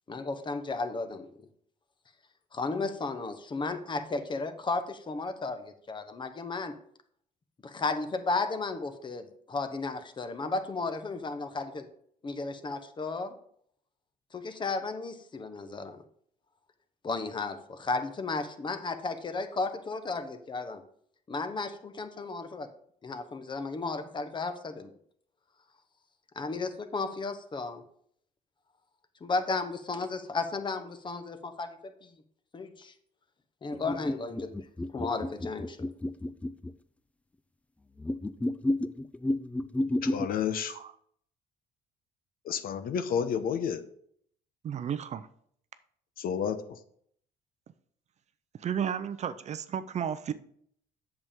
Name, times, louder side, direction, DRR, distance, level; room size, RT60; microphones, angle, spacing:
voice 1, 0.1-1.3 2.5-6.7 7.6-11.9 12.2-13.3 14.3-16.0 17.0-20.8 21.3-22.7 23.0-24.9 26.3-27.8 29.2-32.1 32.5-32.9 33.6-34.5 34.9-35.8, left 3 dB, 30° left, 9 dB, 1.0 m, -34 dB
sound 1, 33.7-36.7 38.0-40.2, left 1 dB, 10° left, 0.3 m, -31 dB
voice 2, 40.0-40.8 42.4-43.8 46.2-46.6, left 8 dB, 60° left, 10 dB, 0.8 m, -30 dB
voice 3, 44.6-45.3 48.6-50.3, right 8 dB, 40° right, 13 dB, 0.5 m, -33 dB
7.9 x 7.0 x 3.6 m, 0.65 s
cardioid pair, 110°, 17 cm